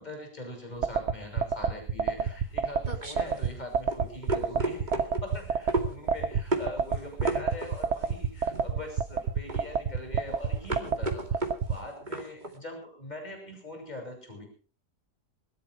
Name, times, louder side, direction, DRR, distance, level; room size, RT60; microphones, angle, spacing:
voice 1, 0.0-14.5, left 1 dB, 25° left, 3 dB, 5.9 m, -42 dB
sound 1, 0.8-11.8, right 6 dB, 45° right, 1.2 m, -28 dB
sound 2, 2.2-12.6, right 2 dB, 25° right, 2.4 m, -35 dB
22.0 x 12.5 x 4.7 m, 0.39 s
omnidirectional pair, 1.8 m